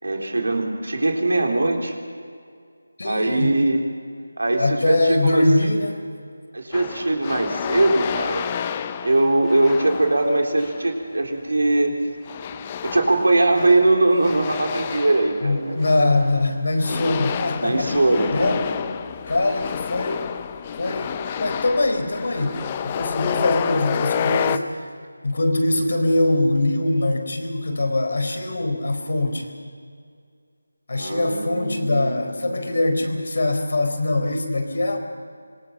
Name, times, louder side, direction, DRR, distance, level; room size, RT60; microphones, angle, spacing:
voice 1, 0.0-2.0 3.0-3.8 4.4-5.5 6.5-8.5 9.0-12.0 12.8-15.8 17.6-18.8 30.9-32.6, right 2 dB, 80° right, 2 dB, 3.8 m, -21 dB
voice 2, 3.0-3.5 4.6-6.0 15.4-17.9 18.3-18.6 19.3-20.2 20.8-24.9 25.2-29.5 30.9-35.0, left 2 dB, 60° left, 5 dB, 4.4 m, -22 dB
sound 1, 6.7-10.9 12.3-16.4 16.8-24.6, left 8 dB, 20° left, 0.7 m, -29 dB
25.5 x 21.5 x 5.8 m, 2.2 s
figure-of-eight pair, 165°, 0 cm